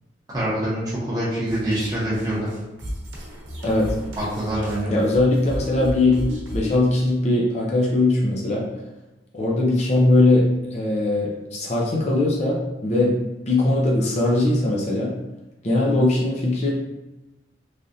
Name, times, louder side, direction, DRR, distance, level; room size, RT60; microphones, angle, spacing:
voice 1, 0.3-2.5 4.2-5.0, right 1 dB, 20° right, -8 dB, 1.0 m, -25 dB
sound 1, 1.5-6.8, equal, 85° right, 0.8 m, -33 dB
voice 2, 3.6-4.0 4.9-6.2 6.5-8.6 9.3-13.2 13.5-15.1 15.6-16.7, left 2 dB, 35° left, -3 dB, 0.5 m, -20 dB
3.3 x 2.5 x 2.6 m, 1.0 s
head